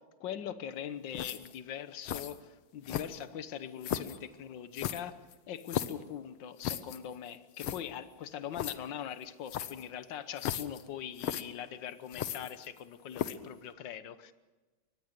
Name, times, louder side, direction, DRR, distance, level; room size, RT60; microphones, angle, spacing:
voice 1, 0.2-5.2 5.5-14.3, left 9 dB, 60° left, 12 dB, 1.6 m, -42 dB
sound 1, 1.1-1.6 2.0-2.4 2.8-3.3 3.8-4.2 4.7-6.0 6.6-7.0 7.3-7.4 7.6-7.8 8.5-8.8 9.5-9.9 10.4-10.8 11.2-11.4 12.1-12.8 13.1-13.5, left 11 dB, 85° left, 1.8 m, -36 dB
24.5 x 19.5 x 6.6 m, 1.2 s
omnidirectional pair, 2.3 m